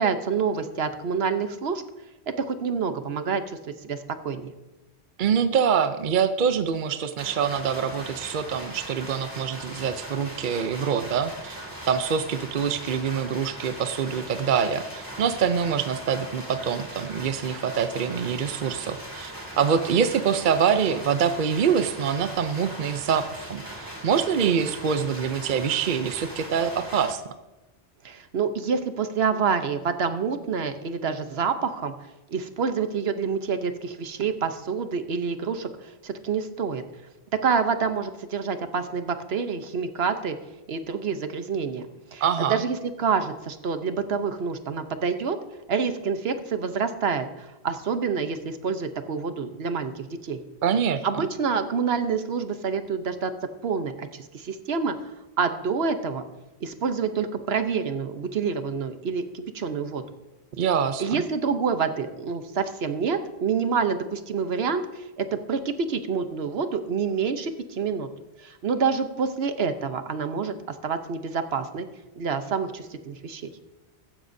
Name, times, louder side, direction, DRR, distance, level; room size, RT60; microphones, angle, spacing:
voice 1, 0.0-1.8 2.4-3.4 3.8-4.5 28.0-31.9 32.3-36.8 37.4-40.4 40.7-42.2 42.5-45.4 45.7-50.4 51.0-53.3 53.6-55.1 55.4-56.2 56.6-60.0 61.0-68.1 68.4-71.9 72.2-73.4, right 5 dB, 70° right, 9 dB, 1.1 m, -27 dB
voice 2, 5.2-11.6 11.9-27.2 42.2-42.6 50.6-51.2 60.6-61.2, right 7 dB, 55° right, 10 dB, 0.7 m, -25 dB
sound 1, 7.2-27.1, right 1 dB, 20° right, 2.6 m, -39 dB
15.0 x 14.5 x 2.7 m, 1.0 s
omnidirectional pair, 1.1 m